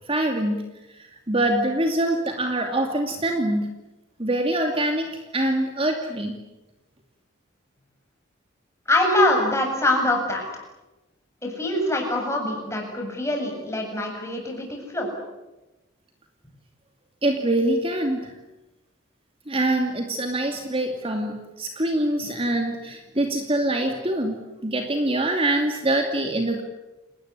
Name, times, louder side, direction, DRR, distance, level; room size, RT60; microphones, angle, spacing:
voice 1, 0.1-0.6 1.3-3.7 4.2-6.4 17.2-18.3 19.5-26.6, right 1 dB, 30° right, 4 dB, 2.5 m, -24 dB
voice 2, 8.9-10.5 11.4-15.1, left 1 dB, 15° left, 1 dB, 7.7 m, -24 dB
30.0 x 19.0 x 9.9 m, 1.0 s
head